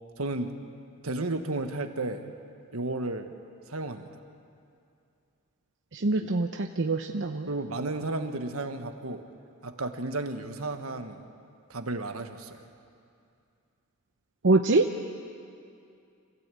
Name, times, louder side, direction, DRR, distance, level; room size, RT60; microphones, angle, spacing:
voice 1, 0.2-0.6 1.0-2.3 2.7-3.3 3.7-4.1 7.5-9.2 9.6-11.2 11.7-12.7, right 2 dB, 80° right, 7 dB, 1.5 m, -33 dB
voice 2, 5.9-7.5 14.4-14.8, right 2 dB, 60° right, 4 dB, 0.8 m, -24 dB
27.0 x 16.0 x 8.4 m, 2.5 s
head